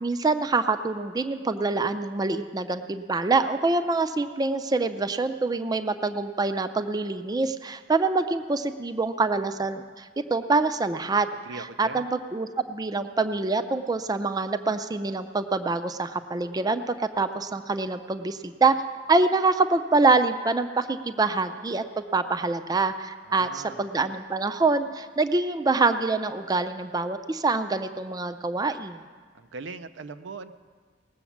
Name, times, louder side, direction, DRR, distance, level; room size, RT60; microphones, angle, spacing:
voice 1, 0.0-18.7 19.1-29.0, right 3 dB, 20° right, 9 dB, 0.4 m, -25 dB
voice 2, 11.4-12.0 23.3-23.8 29.3-30.5, right 4 dB, 85° right, 11 dB, 0.5 m, -40 dB
19.0 x 7.0 x 7.2 m, 1.5 s
head